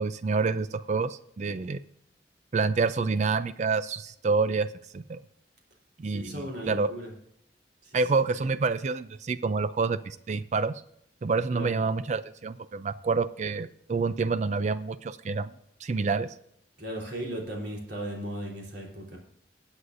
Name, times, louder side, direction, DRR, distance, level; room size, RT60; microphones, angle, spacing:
voice 1, 0.0-1.8 2.5-4.7 4.9-5.2 6.0-6.9 7.9-10.7 11.2-15.5 15.8-16.3, right 4 dB, 40° right, 13 dB, 0.4 m, -28 dB
voice 2, 6.1-7.1 7.8-8.0 11.5-11.7 16.8-19.2, right 1 dB, 70° right, -2 dB, 3.5 m, -36 dB
20.0 x 8.1 x 2.6 m, 0.72 s
head